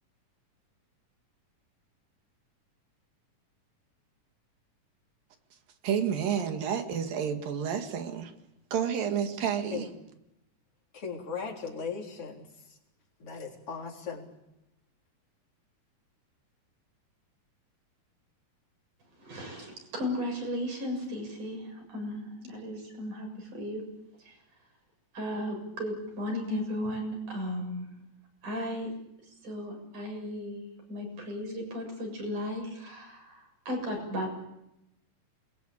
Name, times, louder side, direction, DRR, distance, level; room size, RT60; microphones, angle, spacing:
voice 1, 5.8-8.3 8.7-9.8, right 8 dB, 80° right, 3.7 m, -30 dB
voice 2, 10.9-12.8 13.2-14.3, left 5 dB, 40° left, 4.7 m, -38 dB
voice 3, 19.2-23.8 24.2-24.4 25.1-27.9 28.4-28.9 29.4-34.3, left 1 dB, 65° right, 8.7 m, -35 dB
28.0 x 22.0 x 8.7 m
omnidirectional pair, 3.9 m